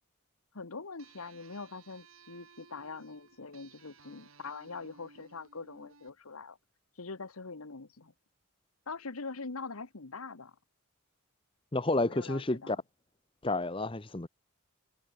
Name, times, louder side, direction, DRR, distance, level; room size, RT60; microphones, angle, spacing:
voice 1, 0.5-6.6 7.0-8.1 8.9-10.5 12.0-12.8, left 4 dB, 90° left, 1.3 m, -43 dB
sound 1, 1.0-6.1, right 4 dB, 75° right, 4.5 m, -59 dB
voice 2, 11.7-12.8 13.4-14.3, left 2 dB, 25° left, 0.9 m, -30 dB
head